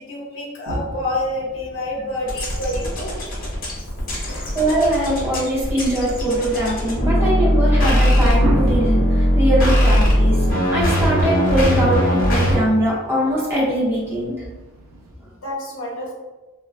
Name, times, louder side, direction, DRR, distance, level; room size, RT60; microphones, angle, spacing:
voice 1, 0.0-3.1 4.3-4.6 15.1-16.1, left 1 dB, 70° left, -2 dB, 0.6 m, -28 dB
sound 1, 0.7-15.1, right 1 dB, 90° right, 0.4 m, -35 dB
sound 2, 2.3-12.6, equal, 40° left, 0.8 m, -19 dB
voice 2, 4.2-10.4 10.7-14.3, right 1 dB, 10° right, -7 dB, 0.6 m, -22 dB
2.9 x 2.2 x 2.4 m, 1.1 s
head